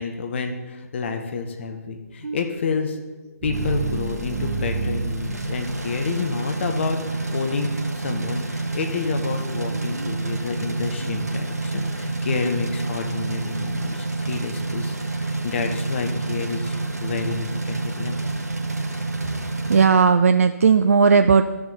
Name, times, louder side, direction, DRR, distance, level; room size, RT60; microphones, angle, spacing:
voice 1, 0.0-3.0 3.4-7.0 7.3-18.3, left 5 dB, 45° left, 5 dB, 0.9 m, -29 dB
sound 1, 2.2-6.3, right 4 dB, 30° right, 1.1 m, -31 dB
sound 2, 3.5-19.9, right 2 dB, 75° right, 1.2 m, -28 dB
voice 2, 9.7-10.1 11.0-11.1 13.9-14.0 19.4-21.4, right 5 dB, 60° right, 8 dB, 0.4 m, -18 dB
13.5 x 6.8 x 4.0 m, 1.2 s
figure-of-eight pair, 135°, 9 cm